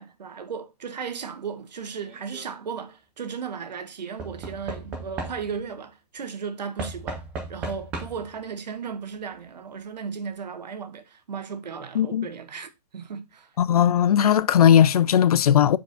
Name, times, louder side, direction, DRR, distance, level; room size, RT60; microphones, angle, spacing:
voice 1, 0.0-7.2 7.5-13.5, right 6 dB, 90° right, 1.3 m, -35 dB
Knock / Wood, 2.0-2.5 4.2-5.7 6.8-8.4 9.4-9.5 9.7-9.8, right 3 dB, 5° right, 0.4 m, -36 dB
voice 2, 12.0-12.3 13.6-15.8, left 9 dB, 65° left, 0.5 m, -18 dB
6.4 x 4.7 x 3.9 m
hypercardioid pair, 175°, 21 cm